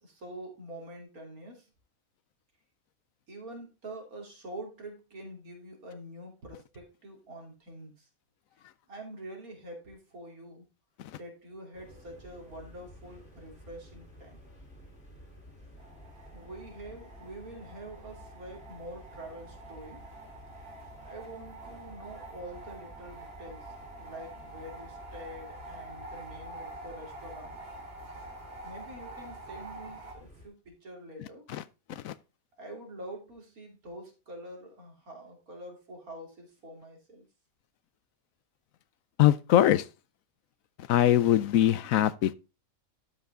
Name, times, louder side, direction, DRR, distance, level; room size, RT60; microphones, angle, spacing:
voice 1, 0.0-1.7 3.3-8.1 8.9-10.7 11.2-14.4 16.3-20.0 21.0-23.7 24.0-27.6 28.6-31.4 32.6-37.3, right 1 dB, 90° right, 3.4 m, -46 dB
sound 1, 11.7-30.5, equal, 45° left, 3.8 m, -52 dB
sound 2, 15.8-30.1, right 2 dB, 45° right, 2.7 m, -47 dB
voice 2, 39.2-39.8 40.9-42.4, left 12 dB, 75° left, 1.0 m, -22 dB
12.0 x 5.7 x 3.7 m
omnidirectional pair, 1.5 m